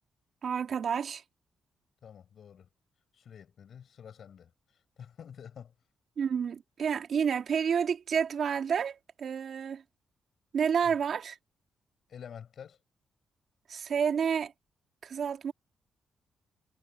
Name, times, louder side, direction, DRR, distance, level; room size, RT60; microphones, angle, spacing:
voice 1, 0.4-1.2 6.2-9.8 10.5-11.3 13.7-14.5 15.0-15.5, right 7 dB, 65° right, 2.4 m, -29 dB
voice 2, 2.0-2.7 3.1-4.5 5.0-5.7 10.8-11.0 12.1-12.8, left 8 dB, 65° left, 6.9 m, -48 dB
cardioid pair, 70°, 0 cm